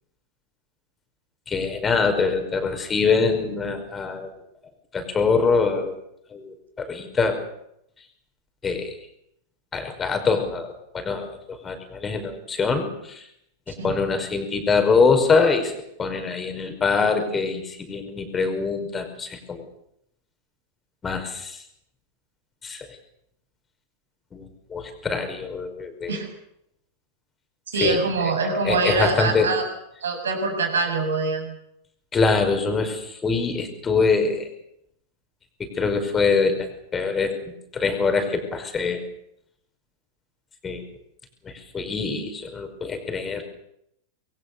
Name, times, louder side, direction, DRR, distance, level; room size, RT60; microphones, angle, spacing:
voice 1, 1.5-4.3 4.9-6.0 6.3-7.4 8.6-9.0 9.7-13.3 13.7-15.7 16.0-19.6 21.0-21.6 22.6-23.0 24.3-26.2 27.8-28.3 28.6-29.5 32.1-34.5 35.6-39.0 40.6-40.8 41.4-43.4, left 4 dB, 20° left, 7 dB, 5.2 m, -24 dB
voice 2, 27.7-29.6 30.0-31.5, right 3 dB, 65° right, 5 dB, 7.2 m, -24 dB
25.5 x 22.5 x 6.9 m, 0.75 s
figure-of-eight pair, 90°, 0 cm